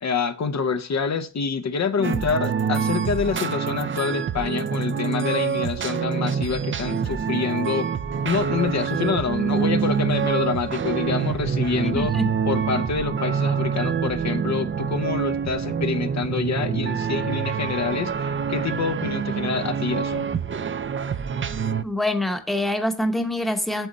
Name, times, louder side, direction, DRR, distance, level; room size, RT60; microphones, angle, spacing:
voice 1, 0.0-7.9 8.2-12.1 12.5-20.3, left 5 dB, 60° left, 0.8 m, -26 dB
sound 1, 2.0-21.8, right 7 dB, 40° right, 0.4 m, -26 dB
sound 2, 8.1-21.9, right 3 dB, 65° right, 1.4 m, -44 dB
voice 2, 11.8-12.3 21.8-23.9, left 1 dB, ahead, 0.9 m, -25 dB
9.0 x 7.6 x 4.0 m
wide cardioid pair, 175°, 30 cm